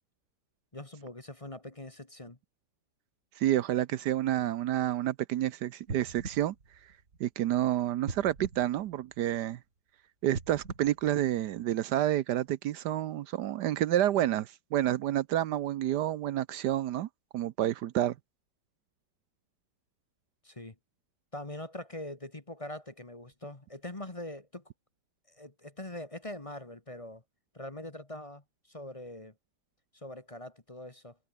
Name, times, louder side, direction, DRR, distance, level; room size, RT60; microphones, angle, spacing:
voice 1, 0.7-2.4 20.4-20.7 21.3-24.6 25.3-27.2 27.5-29.3 29.9-31.2, left 1 dB, 20° left, 1.6 m, -43 dB
voice 2, 3.4-6.5 7.2-9.6 10.2-17.1 17.3-18.1, right 12 dB, 75° right, 1.2 m, -29 dB
sound 1, 5.8-7.5 8.0-9.6 10.2-11.9 12.5-12.6, right 4 dB, 45° right, 3.0 m, -43 dB
omnidirectional pair, 1.9 m